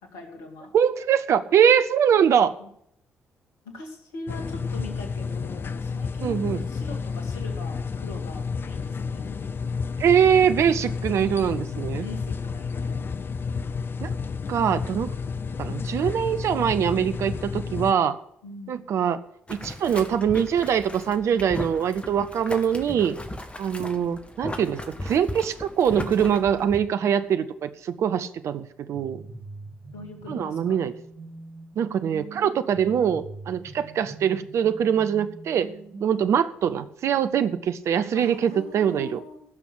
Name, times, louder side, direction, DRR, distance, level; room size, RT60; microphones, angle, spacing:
voice 1, 0.0-0.7 2.6-2.7 3.6-9.3 12.0-13.1 18.4-18.9 29.9-30.8 36.2-36.3 38.1-39.4, left 2 dB, 70° left, 3 dB, 2.3 m, -42 dB
voice 2, 0.7-2.5 6.2-6.6 10.0-12.1 14.0-14.1 14.5-15.1 15.6-18.2 18.7-19.2 19.5-23.2 23.6-29.2 30.3-30.9 31.8-35.7 36.0-39.2, right 8 dB, 55° right, 11 dB, 0.8 m, -23 dB
sound 1, 4.3-17.9, left 5 dB, 40° left, 0.7 m, -31 dB
Boiling, 19.5-26.8, left 1 dB, 20° left, 2.0 m, -37 dB
sound 2, 28.9-36.5, right 3 dB, 35° right, 3.6 m, -43 dB
16.0 x 6.1 x 7.7 m, 0.70 s
figure-of-eight pair, 40°, 6 cm